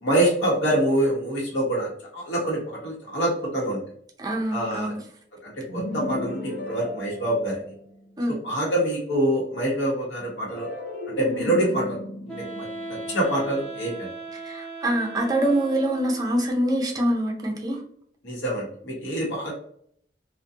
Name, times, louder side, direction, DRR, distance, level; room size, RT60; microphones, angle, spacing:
voice 1, 0.0-3.8 4.5-4.9 5.4-7.6 8.4-10.7 11.2-12.0 12.3-12.7 13.1-14.1 18.2-19.5, right 1 dB, 80° left, -3 dB, 0.9 m, -25 dB
voice 2, 4.2-5.0 8.2-8.4 14.3-17.8, right 1 dB, 20° right, 0 dB, 0.5 m, -25 dB
sound 1, 5.7-8.1 10.5-13.8, left 2 dB, 55° left, 0.6 m, -35 dB
Wind instrument woodwind instrument, 12.3-16.4, right 2 dB, ahead, 0.9 m, -38 dB
2.4 x 2.1 x 2.6 m, 0.64 s
head